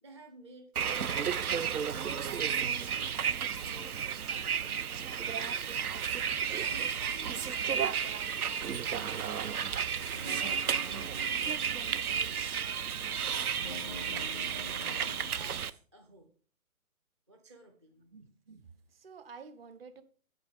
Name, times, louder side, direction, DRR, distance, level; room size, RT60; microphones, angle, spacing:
voice 1, 0.0-3.3 3.6-8.1 8.4-9.7 10.0-13.6 14.1-16.3 17.3-18.2, right 2 dB, 20° right, 0.5 m, -55 dB
Bus, 0.8-15.7, right 7 dB, 80° right, 0.8 m, -33 dB
sound 1, 10.1-12.5 13.5-15.3, equal, 30° left, 0.4 m, -47 dB
voice 2, 18.1-20.0, right 5 dB, 40° right, 1.0 m, -51 dB
9.0 x 8.0 x 3.6 m
hypercardioid pair, 155°, 44 cm